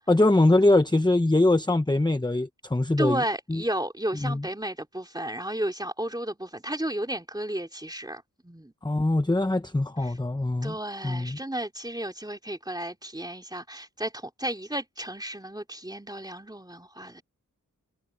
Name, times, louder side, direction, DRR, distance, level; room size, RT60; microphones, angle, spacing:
voice 1, 0.1-3.2 3.5-3.6 4.2-4.4 8.8-10.7 11.0-11.4, left 2 dB, 15° left, 1.0 m, -22 dB
voice 2, 3.0-8.7 10.0-10.2 10.6-17.2, right 1 dB, 10° right, 2.9 m, -33 dB
wide cardioid pair, 65°, 34 cm